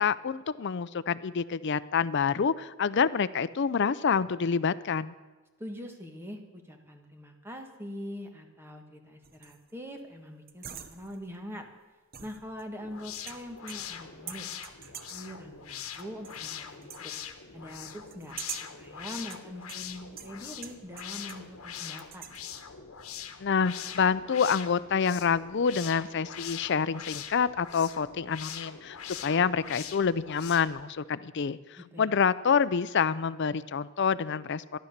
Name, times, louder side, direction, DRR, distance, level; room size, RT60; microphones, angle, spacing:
voice 1, 0.0-5.1 23.4-34.8, left 6 dB, 55° left, 16 dB, 0.5 m, -27 dB
voice 2, 5.6-11.7 12.2-14.5 14.8-17.1 17.5-18.4 18.8-22.2 31.8-32.1, equal, 10° right, 4 dB, 1.4 m, -43 dB
sound 1, 9.2-9.7 10.5-11.3 12.1-12.9 13.3-14.0 14.3-15.3 15.9-16.5 16.8-17.1 18.1-18.8 19.3-21.5 21.7-22.4, right 8 dB, 45° right, 0.8 m, -45 dB
sound 2, 12.8-30.8, left 8 dB, 80° left, 1.1 m, -43 dB
13.5 x 11.5 x 6.6 m, 1.3 s
head